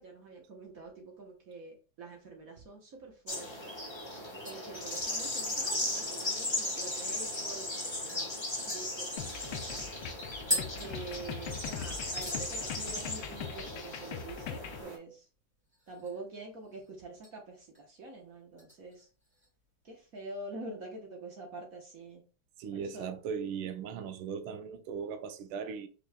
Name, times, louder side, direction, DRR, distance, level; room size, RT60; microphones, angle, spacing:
voice 1, 0.0-3.7 4.4-8.3 8.7-9.9 10.5-15.2 15.9-19.0 19.9-22.2 22.7-23.1, right 2 dB, 50° right, 1.2 m, -46 dB
sound 1, 3.3-15.0, left 1 dB, 20° left, 0.9 m, -37 dB
sound 2, 4.5-7.3 7.6-7.7 8.1-8.2 8.7-11.7 11.9-12.5 12.8-13.2 13.5-13.6 15.7-16.3 16.6-17.3 17.7-18.0 18.6-19.5 19.8-19.9, equal, 5° right, 1.7 m, -41 dB
sound 3, 9.2-14.8, left 8 dB, 80° left, 1.5 m, -42 dB
voice 2, 22.6-25.9, right 6 dB, 85° right, 1.5 m, -38 dB
5.2 x 4.6 x 2.2 m
omnidirectional pair, 2.3 m